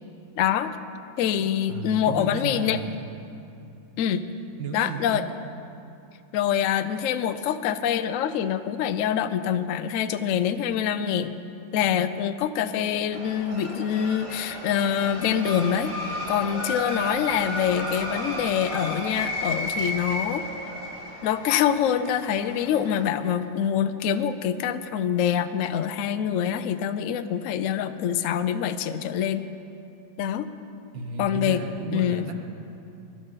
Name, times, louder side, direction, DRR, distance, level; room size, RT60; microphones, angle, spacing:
voice 1, 0.4-0.7 1.2-3.0 4.0-4.2 4.7-5.2 6.3-11.3 11.7-15.9 16.3-20.4 21.2-29.4 30.2-30.5 31.2-31.6 31.9-32.3, left 9 dB, 75° left, 10 dB, 0.7 m, -25 dB
voice 2, 1.7-3.0 4.6-5.3 30.9-32.3, right 4 dB, 80° right, 3 dB, 1.8 m, -33 dB
sound 1, 13.1-23.1, left 1 dB, 20° right, 1.3 m, -33 dB
21.5 x 12.5 x 4.0 m, 2.7 s
omnidirectional pair, 2.0 m